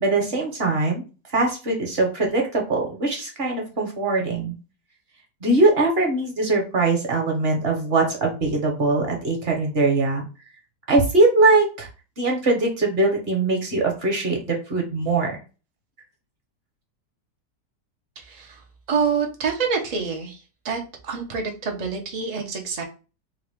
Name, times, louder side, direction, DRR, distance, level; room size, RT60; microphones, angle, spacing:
voice 1, 0.0-1.0 1.3-4.5 5.4-10.2 10.9-11.9 12.2-15.4, right 2 dB, 40° right, 1 dB, 1.1 m, -21 dB
voice 2, 18.9-20.4 20.6-22.8, right 5 dB, 75° right, 1 dB, 0.3 m, -26 dB
3.7 x 2.4 x 3.4 m, 0.33 s
omnidirectional pair, 1.9 m